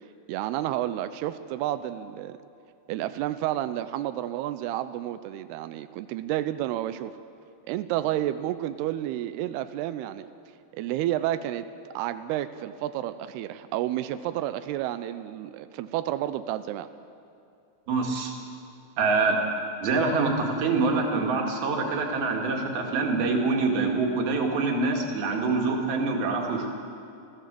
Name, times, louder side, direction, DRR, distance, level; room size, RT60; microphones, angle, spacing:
voice 1, 0.3-2.4 2.9-7.1 7.7-10.3 10.8-11.7 11.9-16.9, right 13 dB, 90° right, 11 dB, 2.3 m, -30 dB
voice 2, 17.9-18.3 19.0-19.4 19.8-26.7, right 3 dB, 55° right, 1 dB, 3.9 m, -25 dB
28.5 x 15.0 x 7.7 m, 2.5 s
omnidirectional pair, 5.4 m